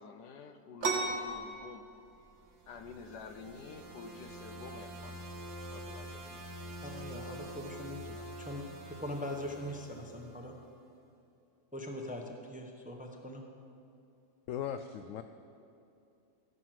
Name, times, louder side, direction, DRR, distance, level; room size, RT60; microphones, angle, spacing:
voice 1, 0.0-1.8 2.7-5.1 5.7-6.5, left 5 dB, 85° left, 8 dB, 1.4 m, -49 dB
sound 1, 0.8-8.2, right 3 dB, 45° right, 1.2 m, -40 dB
sound 2, 2.4-10.6, right 1 dB, 80° right, 1.8 m, -46 dB
voice 2, 6.8-10.5 11.7-13.4, left 1 dB, 5° right, 2 dB, 0.7 m, -42 dB
voice 3, 14.5-15.2, left 9 dB, 70° left, 8 dB, 0.8 m, -38 dB
16.5 x 6.2 x 7.6 m, 2.7 s
omnidirectional pair, 1.7 m